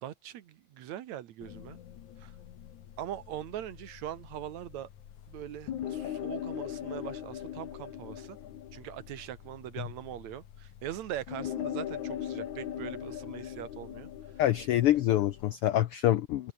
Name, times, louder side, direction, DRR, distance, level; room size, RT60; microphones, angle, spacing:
voice 1, 0.0-1.8 2.2-2.3 3.0-4.9 5.3-8.4 8.7-14.1, right 12 dB, 70° right, 2.3 m, -41 dB
sound 1, 1.4-15.5, left 10 dB, 70° left, 3.0 m, -41 dB
voice 2, 14.4-16.5, left 13 dB, 90° left, 1.2 m, -26 dB
open air
omnidirectional pair, 3.5 m